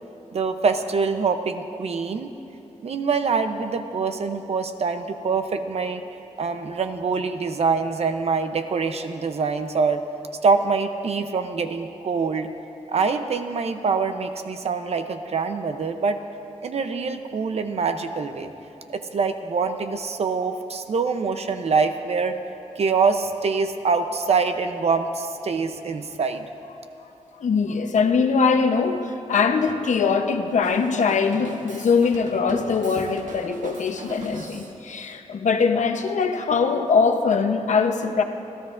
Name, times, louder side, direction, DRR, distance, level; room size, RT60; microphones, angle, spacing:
voice 1, 0.3-2.3 2.8-6.0 6.4-10.0 10.4-12.5 12.9-16.2 16.6-18.5 18.9-22.4 22.8-26.5, right 5 dB, 55° right, 8 dB, 0.7 m, -24 dB
voice 2, 27.4-38.2, left 5 dB, 75° left, 6 dB, 0.8 m, -22 dB
Drum kit, 30.6-34.8, right 2 dB, 85° right, 1.3 m, -40 dB
30.0 x 14.0 x 2.5 m, 2.9 s
wide cardioid pair, 175°, 13 cm